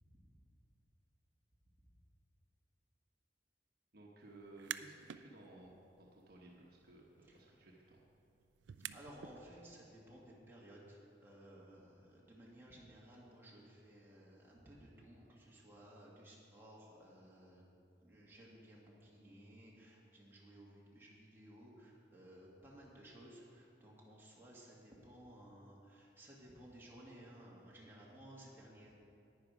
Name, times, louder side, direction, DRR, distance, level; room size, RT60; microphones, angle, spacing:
voice 1, 3.9-8.0, right 2 dB, 60° right, -2 dB, 1.1 m, -57 dB
sound 1, 4.4-5.2 5.6-9.4, right 10 dB, 90° right, 0.4 m, -50 dB
voice 2, 8.9-17.6 18.0-29.0, right 1 dB, 15° right, -5 dB, 2.0 m, -57 dB
10.5 x 9.6 x 4.9 m, 2.5 s
head